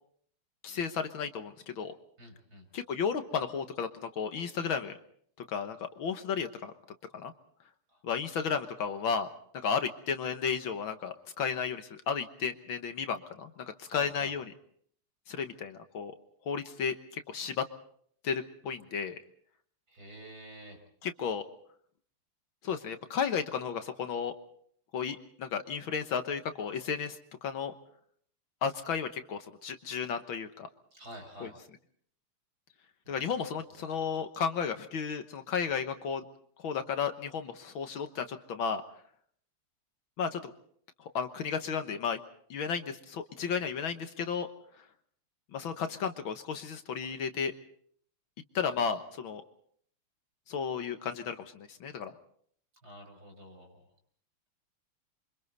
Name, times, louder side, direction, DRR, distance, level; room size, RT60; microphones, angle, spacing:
voice 1, 0.6-1.9 2.7-5.0 5.5-6.7 7.1-7.3 8.0-9.3 9.6-14.5 15.3-16.1 16.5-17.6 18.2-19.2 21.0-21.4 22.6-24.3 24.9-27.7 28.6-30.7 31.4-31.5 33.1-36.3 36.6-38.8 40.2-40.5 41.0-42.2 42.5-44.5 45.5-47.5 48.5-49.4 50.5-52.1, left 6 dB, 70° left, 8 dB, 1.9 m, -33 dB
voice 2, 2.2-2.7 7.9-8.0 13.9-14.3 19.9-20.8 30.9-31.6 33.1-33.3 52.8-53.9, right 1 dB, 45° right, 3 dB, 5.7 m, -49 dB
29.0 x 25.0 x 4.1 m, 0.63 s
omnidirectional pair, 2.4 m